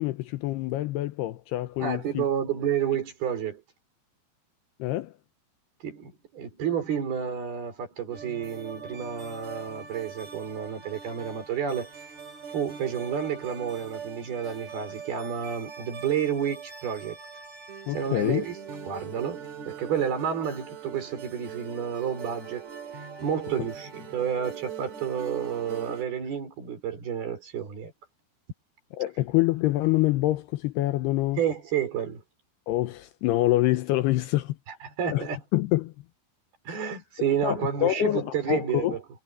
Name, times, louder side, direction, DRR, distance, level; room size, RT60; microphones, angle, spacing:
voice 1, 0.0-2.2 4.8-5.1 17.9-18.5 29.0-31.4 32.7-34.6 35.1-35.2 35.5-35.9 36.7-36.8 37.4-39.0, left 16 dB, 75° left, 2.6 m, -26 dB
voice 2, 1.8-3.6 5.8-11.9 12.5-17.2 17.9-18.6 18.9-22.7 22.9-27.9 31.4-32.2 34.8-35.4 36.7-39.0, right 8 dB, 60° right, 7.0 m, -30 dB
sound 1, 8.1-26.0, right 7 dB, 40° right, 4.5 m, -42 dB
omnidirectional pair, 5.1 m